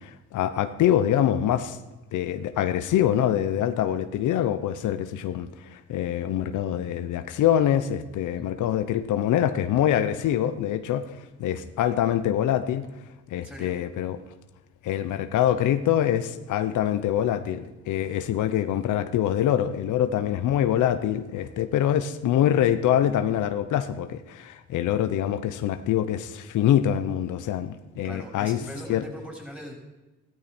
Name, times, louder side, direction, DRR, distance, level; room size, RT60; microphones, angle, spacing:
voice 1, 0.0-1.8 2.1-12.9 13.3-14.2 14.8-28.6 28.9-29.0, left 10 dB, 80° left, 10 dB, 0.9 m, -25 dB
voice 2, 8.2-8.5 13.3-13.8 28.0-29.7, equal, 5° right, -1 dB, 5.4 m, -40 dB
15.0 x 13.5 x 4.4 m, 1.1 s
cardioid pair, 90°, 30 cm